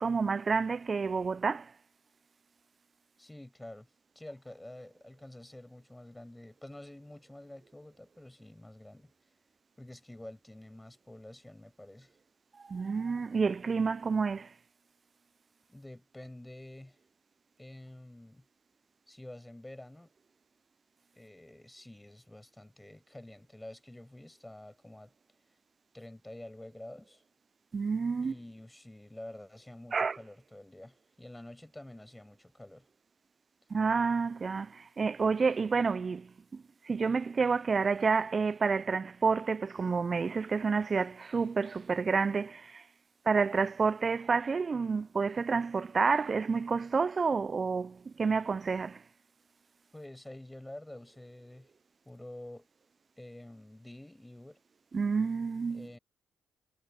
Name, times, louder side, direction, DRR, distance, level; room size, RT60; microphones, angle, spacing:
voice 1, 0.0-1.7 12.7-14.5 27.7-28.3 29.9-30.2 33.7-42.8 43.3-49.0 54.9-55.9, right 5 dB, 45° right, 0.5 m, -29 dB
voice 2, 3.2-3.9 4.2-9.1 9.8-12.2 15.7-17.0 17.6-18.4 19.1-20.1 21.1-25.1 25.9-27.2 28.2-32.8 49.9-51.7 52.1-52.7 53.2-54.6 55.7-56.0, left 1 dB, 10° left, 7.3 m, -48 dB
supercardioid pair, 50°, 0 cm